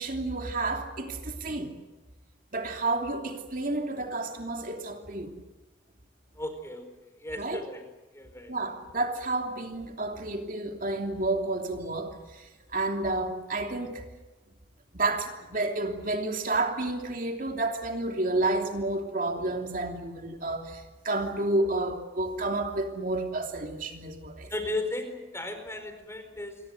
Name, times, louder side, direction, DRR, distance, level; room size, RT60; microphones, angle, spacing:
voice 1, 0.0-1.7 2.5-5.3 7.4-7.6 8.5-14.1 14.9-24.5, right 2 dB, 45° right, 3.0 m, -30 dB
voice 2, 6.3-6.9 7.2-7.8 8.1-8.5 24.5-26.6, left 2 dB, 15° left, 4.5 m, -35 dB
28.0 x 23.0 x 7.9 m
head